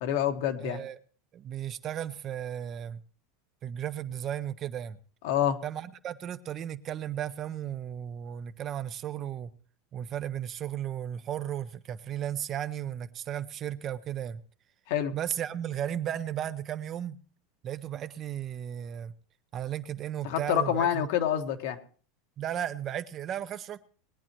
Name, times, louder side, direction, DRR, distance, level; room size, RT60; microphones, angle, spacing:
voice 1, 0.0-0.8 5.2-5.6 14.9-15.1 20.2-21.8, left 10 dB, 65° left, 1.4 m, -27 dB
voice 2, 0.6-1.0 1.3-3.0 3.6-5.0 5.6-9.5 9.9-14.4 15.1-17.2 17.6-19.1 19.5-21.0 22.4-23.8, right 10 dB, 30° right, 0.6 m, -35 dB
20.5 x 9.8 x 3.0 m
supercardioid pair, 160°, 0 cm